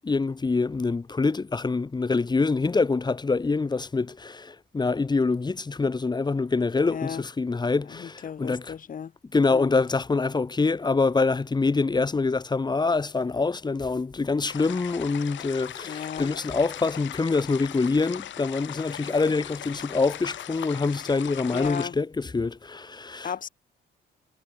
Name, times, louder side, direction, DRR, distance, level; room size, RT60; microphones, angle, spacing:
voice 1, 0.0-8.7 9.3-23.3, left 4 dB, 20° left, 1.1 m, -25 dB
voice 2, 6.9-7.2 7.9-9.1 9.5-9.7 15.8-16.3 21.5-22.0 23.2-23.5, left 7 dB, 45° left, 1.0 m, -34 dB
sound 1, 14.5-21.9, left 12 dB, 70° left, 1.5 m, -39 dB
cardioid pair, 90°, 20 cm